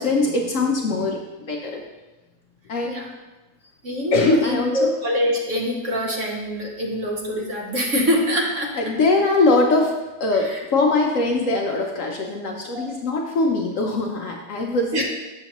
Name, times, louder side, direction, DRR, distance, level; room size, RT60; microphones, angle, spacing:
voice 1, 0.0-1.8 2.7-2.9 4.1-4.9 8.7-14.9, left 3 dB, 60° left, 1 dB, 0.9 m, -22 dB
voice 2, 3.8-8.7 10.3-10.6 12.7-12.9 14.9-15.0, equal, 50° right, -1 dB, 1.2 m, -24 dB
7.9 x 6.7 x 2.9 m, 1.1 s
omnidirectional pair, 1.8 m